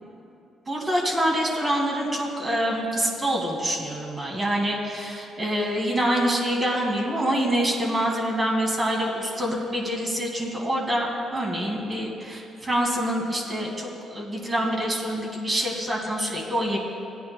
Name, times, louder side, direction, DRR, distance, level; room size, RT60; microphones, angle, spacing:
voice 1, 0.7-16.8, equal, 30° right, -1 dB, 2.2 m, -26 dB
18.0 x 9.5 x 2.2 m, 2.7 s
cardioid pair, 90°, 0 cm